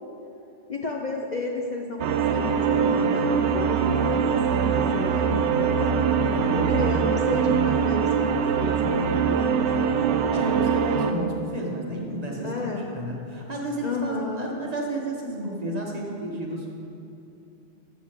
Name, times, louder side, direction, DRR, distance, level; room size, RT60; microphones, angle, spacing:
voice 1, 0.7-5.9 6.6-10.0 12.4-12.9 13.8-14.5, left 3 dB, 45° left, 0 dB, 0.7 m, -32 dB
sound 1, 2.0-11.1, right 6 dB, 80° right, 0.9 m, -23 dB
voice 2, 5.8-7.7 10.3-16.7, right 1 dB, 35° right, -2 dB, 1.3 m, -32 dB
13.5 x 7.2 x 3.6 m, 2.8 s
omnidirectional pair, 1.2 m